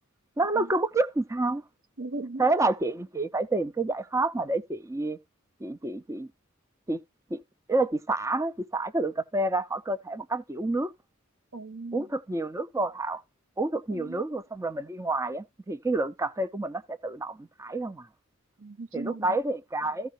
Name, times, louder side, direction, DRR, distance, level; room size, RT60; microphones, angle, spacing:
voice 1, 0.4-1.6 2.4-5.2 5.6-6.3 6.9-7.0 7.3-7.4 7.7-10.9 11.9-13.2 13.6-18.1 18.9-20.1, right 2 dB, 15° right, 0.5 m, -28 dB
voice 2, 2.0-2.5 11.5-12.1 13.9-14.2 18.6-19.3, right 2 dB, 85° right, 0.9 m, -37 dB
15.0 x 5.2 x 2.9 m
head